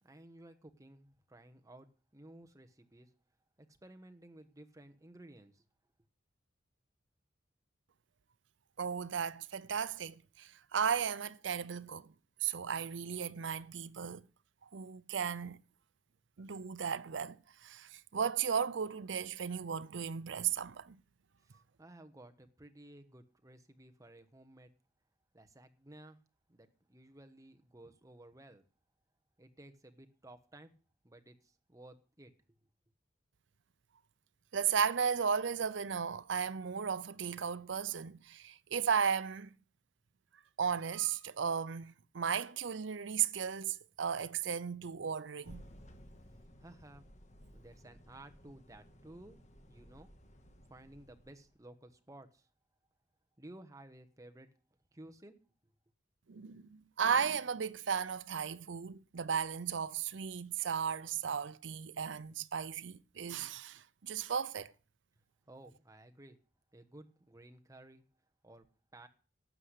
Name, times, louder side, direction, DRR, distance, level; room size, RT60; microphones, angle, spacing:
voice 1, 0.0-3.1 3.7-5.6 21.4-24.7 25.3-26.2 26.5-28.6 29.4-30.7 31.0-32.3 46.6-47.1 47.5-49.4 49.7-50.1 50.7-52.5 53.4-54.5 54.9-55.4 55.6-55.7 65.5-66.4 66.7-68.0 68.4-68.7 68.9-69.1, right 1 dB, 20° right, 1.2 m, -55 dB
voice 2, 8.8-12.1 12.4-14.2 14.7-15.6 16.4-21.0 34.5-39.5 40.6-45.6 56.3-64.7, right 7 dB, 80° right, 0.6 m, -35 dB
sound 1, 45.4-51.6, equal, 40° left, 1.6 m, -57 dB
12.5 x 7.8 x 8.2 m
head